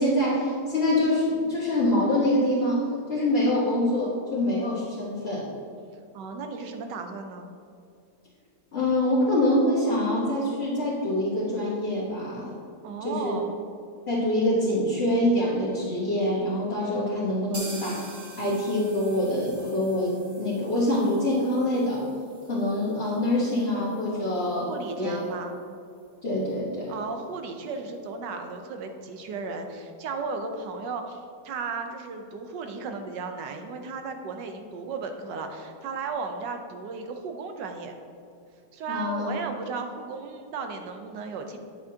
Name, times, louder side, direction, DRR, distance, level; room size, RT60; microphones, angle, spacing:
voice 1, 0.0-5.5 8.7-12.5 13.0-13.3 14.1-18.1 18.4-22.0 22.5-24.7 25.0-25.4 26.2-27.0 38.9-39.3, left 1 dB, 40° left, -8 dB, 1.4 m, -25 dB
voice 2, 6.1-7.5 12.8-13.5 24.7-25.6 26.9-37.9 38.7-41.6, right 4 dB, 75° right, 5 dB, 1.4 m, -35 dB
sound 1, 17.5-25.3 25.6-25.7 26.0-26.1 26.5-26.6, right 2 dB, 35° right, 0.9 m, -46 dB
9.0 x 7.9 x 2.8 m, 2.4 s
omnidirectional pair, 1.9 m